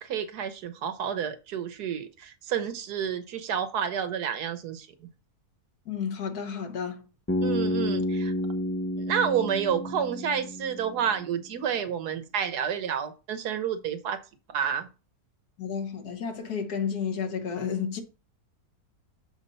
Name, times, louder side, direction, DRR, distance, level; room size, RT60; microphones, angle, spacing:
voice 1, 0.0-5.1 7.4-8.3 9.0-14.2 14.5-14.9, right 8 dB, 90° right, 1.4 m, -30 dB
voice 2, 5.9-7.0 15.6-18.0, left 6 dB, 75° left, 1.7 m, -31 dB
Bass guitar, 7.3-11.3, left 1 dB, 20° left, 0.3 m, -30 dB
7.0 x 4.1 x 5.4 m
omnidirectional pair, 1.6 m